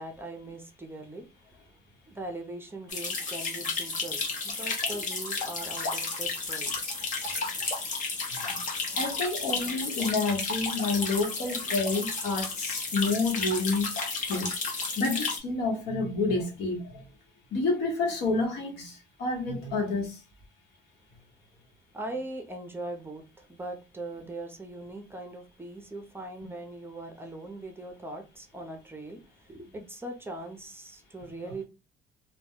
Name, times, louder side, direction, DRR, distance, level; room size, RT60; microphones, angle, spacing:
voice 1, 0.0-1.8 2.0-6.7 7.5-7.7 21.9-31.6, right 2 dB, 15° right, 0.6 m, -40 dB
sound 1, 2.9-15.4, left 4 dB, 50° left, 1.0 m, -32 dB
voice 2, 8.9-13.9 14.3-14.5 15.0-17.0 17.5-20.2 31.4-31.5, left 3 dB, 75° left, 1.1 m, -29 dB
2.3 x 2.1 x 3.5 m
cardioid pair, 110°, 17 cm